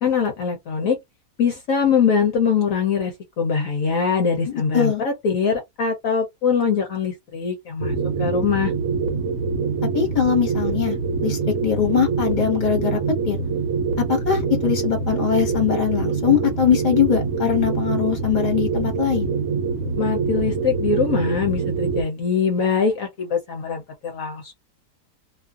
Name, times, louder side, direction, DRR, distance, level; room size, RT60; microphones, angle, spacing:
voice 1, 0.0-1.0 1.4-8.7 20.0-24.5, left 6 dB, 65° left, 1.0 m, -22 dB
voice 2, 4.5-5.0 9.9-11.0 11.2-13.0 13.3-13.4 14.0-19.3, left 9 dB, 35° left, 1.1 m, -21 dB
sound 1, 7.8-22.0, right 5 dB, 65° right, 1.1 m, -24 dB
2.7 x 2.4 x 2.4 m
omnidirectional pair, 1.7 m